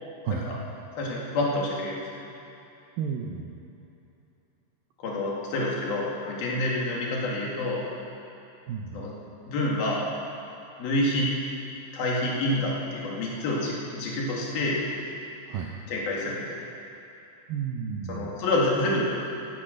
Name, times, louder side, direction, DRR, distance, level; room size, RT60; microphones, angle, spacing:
voice 1, 1.0-2.0 5.0-7.8 8.9-9.1 9.5-10.0 10.8-11.3 11.9-14.8 15.9-16.6 18.1-19.0, left 1 dB, 55° left, -4 dB, 3.9 m, -27 dB
voice 2, 3.0-3.5 8.7-9.1 15.5-15.7 17.5-18.3, right 7 dB, 85° right, 0 dB, 2.0 m, -32 dB
16.0 x 13.0 x 6.6 m, 2.8 s
omnidirectional pair, 5.5 m